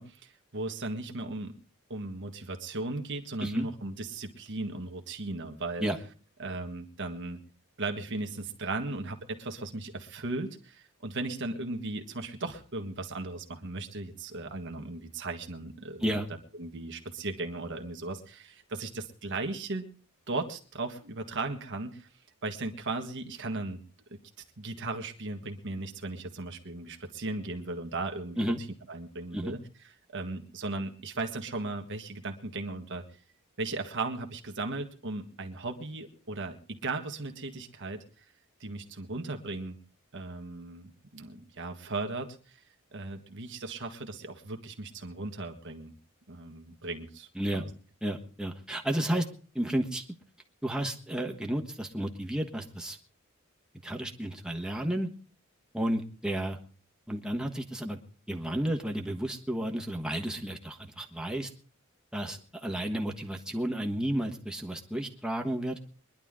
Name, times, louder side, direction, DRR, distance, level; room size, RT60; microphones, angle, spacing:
voice 1, 0.0-1.6 1.9-5.9 6.4-7.4 7.8-16.1 16.6-19.8 20.3-22.1 22.4-23.8 24.1-24.2 24.6-28.5 28.9-29.6 30.1-33.0 33.6-38.2 38.6-39.8 40.1-42.6 42.9-45.9 46.3-47.7, right 2 dB, 60° right, 4 dB, 1.6 m, -37 dB
voice 2, 48.0-49.2 49.5-50.0 50.6-53.0 53.8-55.1 55.7-56.6 57.1-58.0 58.3-61.5 62.1-65.8, right 1 dB, 5° right, 2 dB, 1.4 m, -32 dB
22.5 x 11.0 x 3.7 m, 0.39 s
head